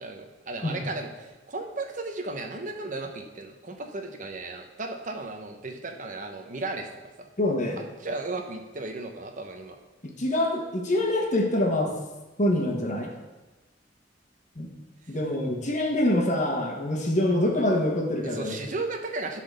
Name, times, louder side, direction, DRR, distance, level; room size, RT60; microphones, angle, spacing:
voice 1, 0.0-6.9 7.2-7.3 7.8-9.8 18.2-19.4, right 3 dB, 40° right, 4 dB, 1.0 m, -35 dB
voice 2, 7.4-7.8 10.0-11.9 12.4-13.1 14.5-14.7 15.1-18.5, left 1 dB, 40° left, 0 dB, 1.4 m, -25 dB
10.0 x 4.1 x 6.7 m, 1.1 s
head